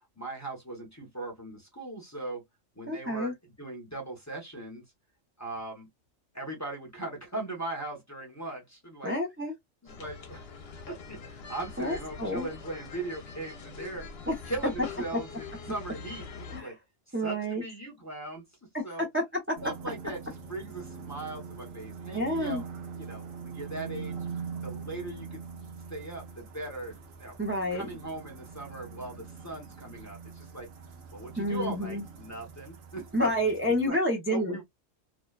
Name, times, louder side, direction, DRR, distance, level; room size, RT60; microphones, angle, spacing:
voice 1, 0.2-2.4 2.8-4.8 5.4-5.9 6.3-9.1 9.8-10.4 10.9-14.0 14.5-16.8 17.1-18.4 18.8-19.1 19.6-22.6 23.0-24.2 24.6-27.4 27.7-30.7 31.1-33.5 33.8-34.0 34.3-34.6, right 2 dB, 15° left, 0.7 m, -39 dB
voice 2, 2.9-3.3 9.0-9.5 11.8-12.5 14.3-14.4 16.5-16.7 17.1-17.6 18.7-18.8 19.1-19.2 22.1-22.6 27.4-27.9 31.4-32.0 33.1-34.6, equal, 15° right, 0.4 m, -29 dB
sound 1, 9.9-16.6, left 4 dB, 60° left, 0.9 m, -44 dB
sound 2, 19.6-33.9, right 5 dB, 85° right, 1.1 m, -43 dB
2.7 x 2.2 x 2.2 m
omnidirectional pair, 1.3 m